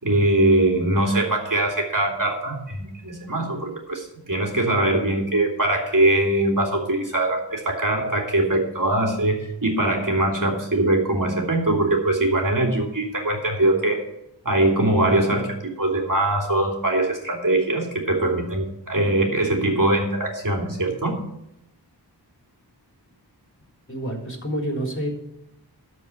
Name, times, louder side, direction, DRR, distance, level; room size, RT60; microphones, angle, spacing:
voice 1, 0.0-14.0 14.4-21.2, right 1 dB, 50° right, 0 dB, 3.0 m, -22 dB
voice 2, 23.9-25.2, equal, 30° left, 1 dB, 3.6 m, -28 dB
13.0 x 5.0 x 8.4 m, 0.84 s
wide cardioid pair, 50°, 42 cm